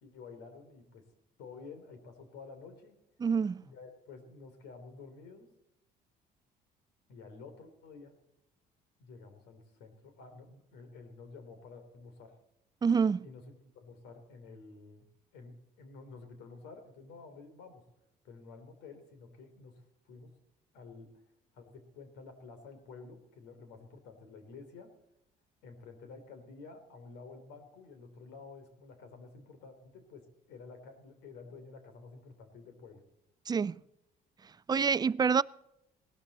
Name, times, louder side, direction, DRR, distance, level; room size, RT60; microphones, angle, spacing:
voice 1, 0.0-1.0 1.4-3.0 3.6-5.5 7.1-8.2 9.0-12.3 13.2-15.1 15.3-17.8 18.2-20.3 20.7-21.1 21.5-24.9 25.6-33.0, left 4 dB, 90° left, 3.5 m, -51 dB
voice 2, 3.2-3.6 12.8-13.3 33.5-33.8 34.7-35.4, right 6 dB, 25° right, 0.4 m, -27 dB
18.5 x 13.0 x 4.3 m
cardioid pair, 110°, 17 cm